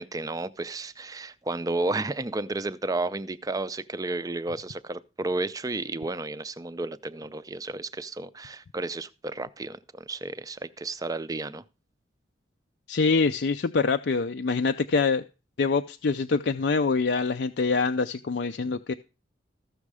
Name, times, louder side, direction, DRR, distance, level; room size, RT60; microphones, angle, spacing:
voice 1, 0.0-11.6, right 2 dB, 20° right, 0.4 m, -32 dB
voice 2, 12.9-15.2 15.6-18.9, left 4 dB, 60° left, 0.5 m, -25 dB
14.5 x 6.4 x 4.8 m
head